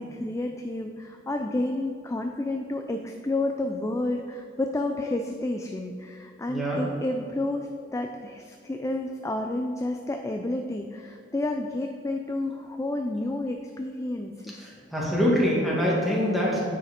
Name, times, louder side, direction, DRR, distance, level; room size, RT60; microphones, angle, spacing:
voice 1, 0.0-14.7, left 2 dB, 15° left, 4 dB, 0.3 m, -30 dB
voice 2, 6.5-6.8 14.6-16.7, equal, ahead, -6 dB, 1.9 m, -24 dB
9.2 x 4.9 x 5.1 m, 2.4 s
head